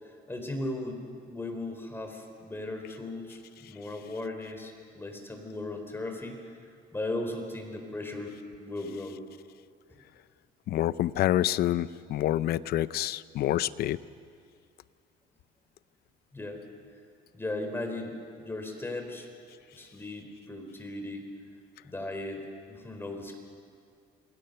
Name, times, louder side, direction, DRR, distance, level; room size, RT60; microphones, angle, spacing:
voice 1, 0.0-6.6 6.9-9.2 16.3-16.6 17.3-19.3 19.7-21.2 21.8-23.3, left 2 dB, 15° left, 4 dB, 4.2 m, -37 dB
voice 2, 10.7-14.0, left 13 dB, 70° left, 17 dB, 0.6 m, -27 dB
28.0 x 21.0 x 6.8 m, 2.2 s
cardioid pair, 110°, 17 cm